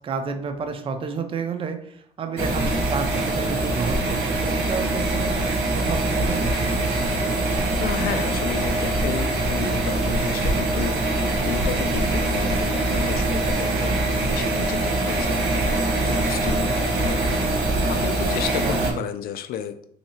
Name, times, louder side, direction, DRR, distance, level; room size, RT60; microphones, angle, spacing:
voice 1, 0.0-6.7 18.6-19.0, right 5 dB, 35° right, 7 dB, 0.5 m, -31 dB
sound 1, 2.4-18.9, right 2 dB, 85° right, 0.9 m, -23 dB
voice 2, 7.8-15.4 15.6-19.8, left 9 dB, 60° left, 10 dB, 0.4 m, -33 dB
3.1 x 2.8 x 2.8 m, 0.65 s
cardioid pair, 110°, 17 cm